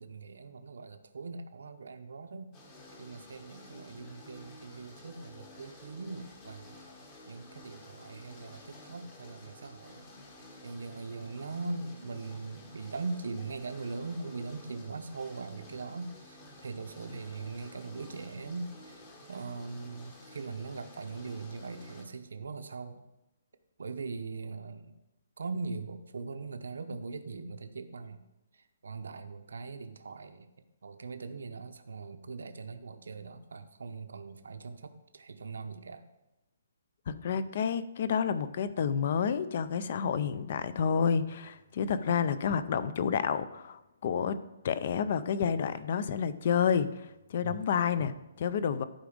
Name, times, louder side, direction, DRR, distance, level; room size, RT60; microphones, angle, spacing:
voice 1, 0.0-2.5 3.0-6.8 7.3-10.1 10.6-19.0 19.3-23.0 23.8-24.9 25.4-28.2 28.5-36.0 47.4-47.6, right 4 dB, 85° right, 8 dB, 0.8 m, -41 dB
sound 1, 2.5-22.0, left 1 dB, 15° left, 1.0 m, -52 dB
voice 2, 37.1-44.4 44.6-48.1 48.4-48.8, left 7 dB, 35° left, 14 dB, 0.4 m, -29 dB
11.5 x 4.9 x 5.1 m, 0.93 s
hypercardioid pair, 180°, 0 cm